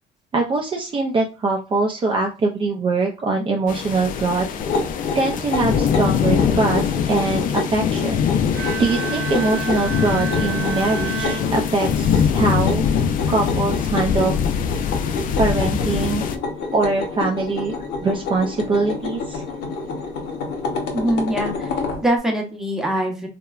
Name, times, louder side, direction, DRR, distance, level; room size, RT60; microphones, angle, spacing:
voice 1, 0.3-4.7 5.1-8.2 8.8-12.8 13.3-14.3 15.4-16.2 16.7-17.7 18.0-19.4, right 3 dB, 30° right, 0 dB, 0.4 m, -22 dB
sound 1, 3.7-16.4, left 7 dB, 55° left, 0.4 m, -23 dB
sound 2, 4.6-22.0, left 4 dB, 90° left, 0.8 m, -28 dB
Bowed string instrument, 8.5-12.3, right 6 dB, 75° right, 0.8 m, -30 dB
voice 2, 20.9-23.3, right 1 dB, 5° right, 1 dB, 0.7 m, -23 dB
2.9 x 2.2 x 2.3 m, 0.31 s
cardioid pair, 110°, 17 cm